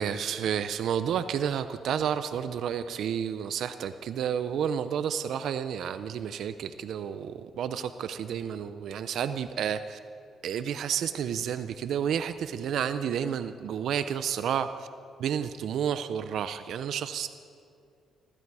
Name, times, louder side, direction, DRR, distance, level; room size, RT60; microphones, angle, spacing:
voice 1, 0.0-10.0 10.4-14.9 15.2-17.3, right 8 dB, 70° right, 11 dB, 0.5 m, -31 dB
20.5 x 14.5 x 4.8 m, 2.5 s
cardioid pair, 90°, 0 cm